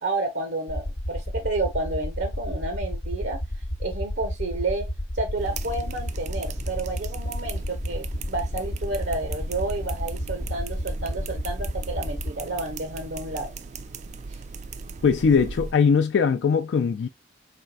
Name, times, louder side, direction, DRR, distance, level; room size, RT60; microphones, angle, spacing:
voice 1, 0.0-3.4 3.8-4.9 5.1-13.5, right 2 dB, 75° right, 0.7 m, -30 dB
sound 1, 0.7-12.3, equal, 55° left, 0.8 m, -31 dB
sound 2, 5.4-15.7, right 4 dB, 40° right, 0.3 m, -38 dB
voice 2, 15.0-17.1, left 6 dB, 75° left, 0.3 m, -20 dB
4.3 x 3.3 x 2.3 m
head